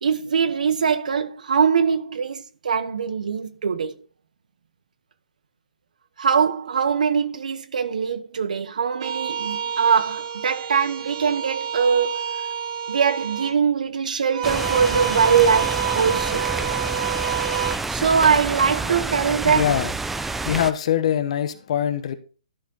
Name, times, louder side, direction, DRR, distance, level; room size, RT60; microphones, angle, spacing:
voice 1, 0.0-3.9 6.2-12.4 12.9-16.5 17.9-19.7, right 6 dB, 75° right, 0.9 m, -22 dB
sound 1, 9.0-13.5 14.3-17.8, right 8 dB, 50° right, 2.7 m, -28 dB
sound 2, 14.4-20.7, right 3 dB, 5° right, 0.3 m, -28 dB
voice 2, 19.4-20.0 20.4-22.1, left 10 dB, 50° left, 1.1 m, -23 dB
11.5 x 5.1 x 3.9 m
hypercardioid pair, 150°, 4 cm